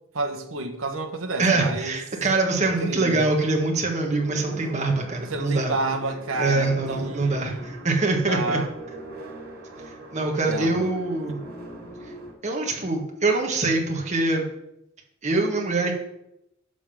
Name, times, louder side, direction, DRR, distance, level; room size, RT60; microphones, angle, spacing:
voice 1, 0.1-2.0 2.8-3.3 5.2-7.6 8.3-8.7 10.4-10.9, right 2 dB, 70° right, 1.2 m, -30 dB
voice 2, 1.4-5.7 6.4-8.6 10.1-11.4 12.4-14.5 15.2-15.9, right 3 dB, 35° right, 1.6 m, -24 dB
sound 1, 2.7-12.3, right 1 dB, 90° right, 2.5 m, -41 dB
11.0 x 3.7 x 7.0 m
head